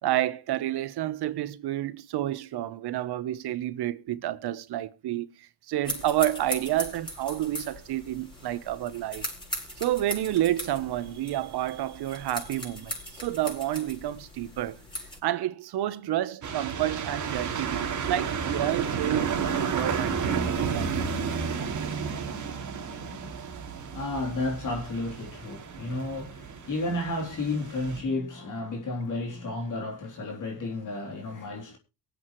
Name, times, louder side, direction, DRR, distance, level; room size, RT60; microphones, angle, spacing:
voice 1, 0.0-5.3 5.7-9.2 9.8-14.8 15.2-21.2, right 13 dB, 60° right, 1.1 m, -30 dB
sound 1, 5.8-15.2, left 1 dB, 10° left, 6.3 m, -39 dB
cars drive slow wet snow, 16.4-28.0, right 6 dB, 40° right, 2.7 m, -32 dB
voice 2, 22.9-31.8, left 2 dB, 40° left, 3.7 m, -33 dB
24.0 x 8.1 x 3.2 m
cardioid pair, 110°, 45 cm